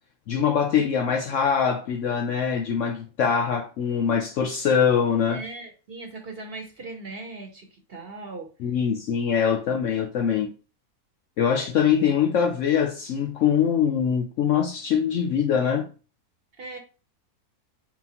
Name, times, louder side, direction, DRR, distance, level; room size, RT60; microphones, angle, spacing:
voice 1, 0.3-5.4 8.6-10.5 11.4-15.9, left 7 dB, 70° left, 0.8 m, -23 dB
voice 2, 5.3-8.5 16.6-16.8, right 3 dB, 45° right, 1.0 m, -38 dB
4.5 x 3.7 x 2.8 m
omnidirectional pair, 1.6 m